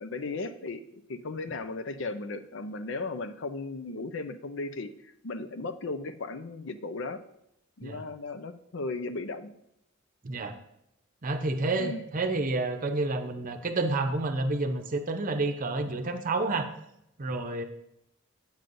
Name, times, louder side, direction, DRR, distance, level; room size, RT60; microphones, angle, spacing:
voice 1, 0.0-7.2 7.8-9.5 11.8-12.1, left 3 dB, 65° left, 10 dB, 0.6 m, -36 dB
voice 2, 10.2-10.6 11.2-16.7 17.2-17.6, right 2 dB, 40° right, 6 dB, 0.7 m, -29 dB
9.2 x 8.8 x 2.6 m, 0.80 s
head